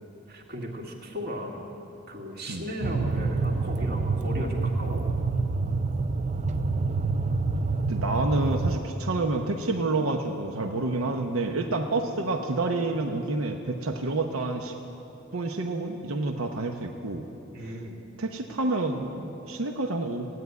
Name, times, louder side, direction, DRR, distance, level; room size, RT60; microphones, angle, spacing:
voice 1, 0.3-1.7 2.1-5.0 17.5-18.0, equal, 50° right, 0 dB, 2.0 m, -36 dB
sound 1, 2.8-8.8, right 3 dB, 35° right, 0.5 m, -27 dB
voice 2, 7.9-14.7 15.3-17.3 17.6-17.7 18.2-20.3, right 2 dB, 80° right, 4 dB, 0.9 m, -28 dB
16.0 x 9.5 x 9.4 m, 3.0 s
head